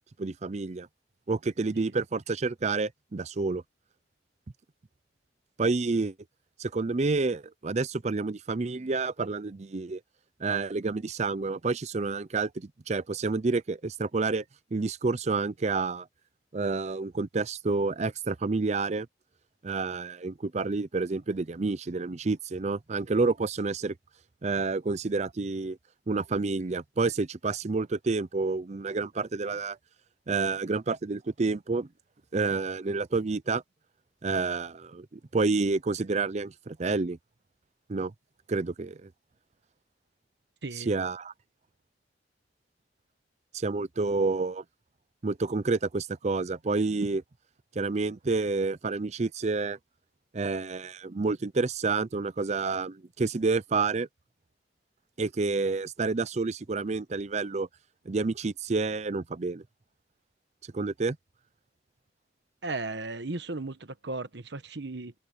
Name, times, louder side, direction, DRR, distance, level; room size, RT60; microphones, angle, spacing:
voice 1, 0.2-0.9 1.3-3.6 5.6-6.1 6.6-10.0 10.4-14.4 14.7-16.1 16.5-19.1 19.6-24.0 24.4-25.8 26.1-29.8 30.3-31.9 32.3-33.6 34.2-37.2 37.9-38.1 38.5-39.1 40.8-41.3 43.5-44.6 45.2-47.2 47.8-49.8 50.3-54.1 55.2-57.7 58.1-59.6 60.7-61.2, right 3 dB, 40° right, 0.5 m, -29 dB
voice 2, 40.6-40.9 62.6-65.1, right 2 dB, 65° right, 1.2 m, -36 dB
head